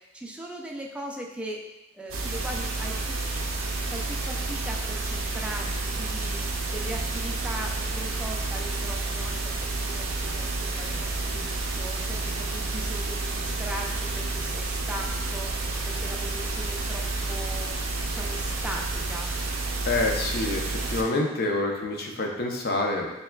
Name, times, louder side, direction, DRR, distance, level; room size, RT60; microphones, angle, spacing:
voice 1, 0.0-1.6 1.9-19.4, right 1 dB, 5° right, 0 dB, 0.4 m, -39 dB
sound 1, 2.1-21.0, right 3 dB, 85° right, 0.6 m, -30 dB
voice 2, 19.9-23.1, left 2 dB, 50° left, 1 dB, 0.6 m, -27 dB
6.8 x 2.3 x 2.2 m, 0.97 s
head